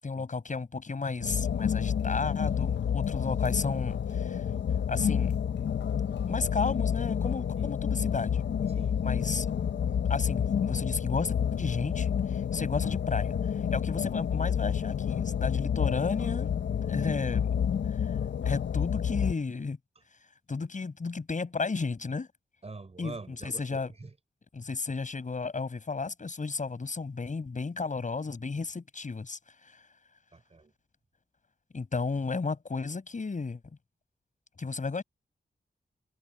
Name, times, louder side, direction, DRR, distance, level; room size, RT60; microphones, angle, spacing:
voice 1, 0.0-4.4 4.9-5.4 6.3-8.3 9.0-9.5 10.1-16.5 16.8-17.5 18.4-19.8 20.5-22.3 23.0-23.9 24.5-29.4 31.7-33.6 34.6-35.0, left 4 dB, 45° left, 7.4 m, -33 dB
sound 1, 1.2-19.3, left 8 dB, 75° left, 0.6 m, -29 dB
voice 2, 8.7-9.0 22.6-24.1 30.3-30.7, right 3 dB, 35° right, 5.4 m, -45 dB
wide cardioid pair, 145°, 19 cm